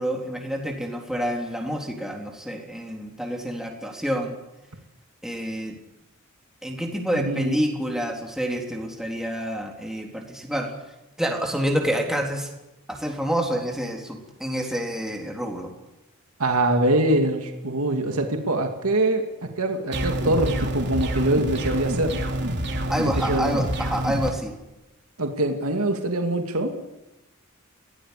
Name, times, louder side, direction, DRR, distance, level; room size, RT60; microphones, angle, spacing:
voice 1, 0.0-4.3 5.2-5.7 6.6-10.7 11.2-12.5 12.9-15.7 22.9-24.5, equal, ahead, 1 dB, 3.6 m, -28 dB
voice 2, 7.1-7.6 16.4-22.2 23.1-23.5 25.2-26.7, right 1 dB, 85° right, 4 dB, 2.5 m, -24 dB
sound 1, 19.9-24.3, right 1 dB, 55° right, 3.1 m, -27 dB
24.0 x 17.5 x 8.4 m, 0.97 s
head